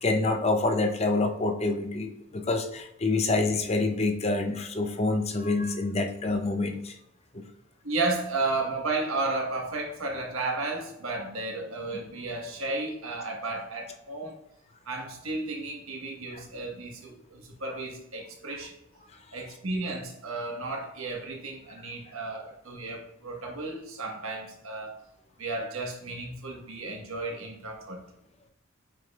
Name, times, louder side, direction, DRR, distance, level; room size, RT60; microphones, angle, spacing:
voice 1, 0.0-7.0 7.3-7.4 16.3-16.4, left 2 dB, 30° left, 5 dB, 0.6 m, -27 dB
voice 2, 7.8-14.4 14.8-18.7 19.3-25.0 25.4-28.0, right 3 dB, 90° right, 0 dB, 1.5 m, -33 dB
7.6 x 5.3 x 2.4 m, 0.81 s
head